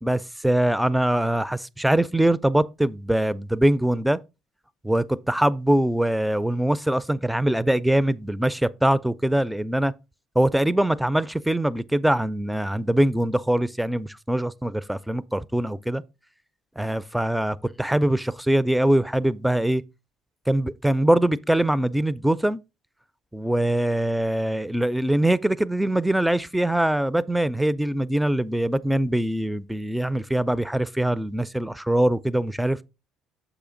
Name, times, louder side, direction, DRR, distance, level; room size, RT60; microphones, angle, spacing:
voice 1, 0.0-4.2 4.8-9.9 10.4-16.0 16.8-19.8 20.5-22.6 23.3-32.8, right 1 dB, 5° right, 0.4 m, -23 dB
6.7 x 5.0 x 3.8 m
hypercardioid pair, 65°, 0 cm